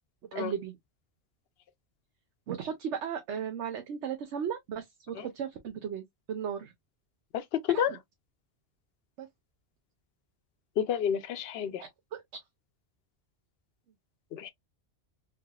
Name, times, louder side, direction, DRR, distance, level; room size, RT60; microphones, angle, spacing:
voice 1, 0.3-0.7 2.5-6.7 7.7-8.0 9.2-9.3 11.8-12.2, right 8 dB, 80° right, 1.0 m, -36 dB
voice 2, 7.3-7.9 10.8-11.8 14.3-14.5, left 9 dB, 65° left, 0.8 m, -30 dB
3.5 x 3.2 x 2.3 m
omnidirectional pair, 1.2 m